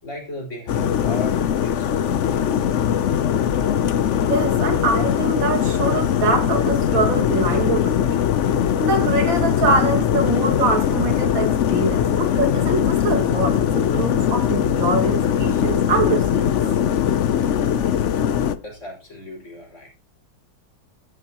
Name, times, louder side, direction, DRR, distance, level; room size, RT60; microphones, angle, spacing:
voice 1, 0.0-2.6 18.6-19.9, left 1 dB, 35° left, 5.8 m, -36 dB
sound 1, 0.7-18.6, left 9 dB, 80° left, 0.6 m, -21 dB
voice 2, 4.2-8.2 8.8-16.6, right 3 dB, 75° right, 2.8 m, -24 dB
13.0 x 12.5 x 3.0 m
omnidirectional pair, 2.2 m